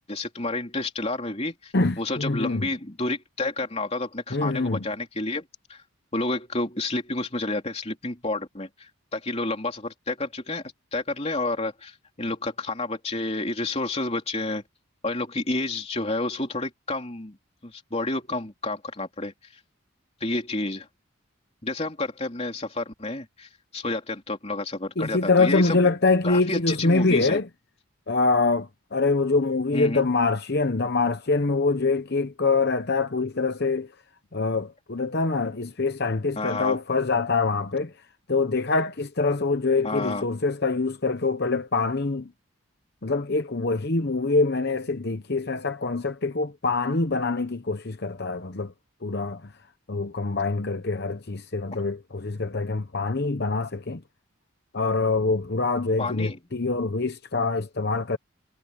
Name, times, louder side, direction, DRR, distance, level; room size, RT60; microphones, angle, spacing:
voice 1, 0.1-5.4 5.7-5.8 6.1-14.6 15.0-17.3 17.6-19.6 20.2-20.9 21.6-25.8 26.2-27.4 29.7-30.1 36.4-36.8 39.8-40.3 56.0-56.4, left 2 dB, 30° left, 3.4 m, -30 dB
voice 2, 1.7-2.7 4.3-4.8 25.0-27.5 28.1-33.9 34.3-37.9 38.3-42.3 43.0-48.7 49.0-49.5 49.9-54.0 54.7-58.2, left 3 dB, 50° left, 0.9 m, -24 dB
head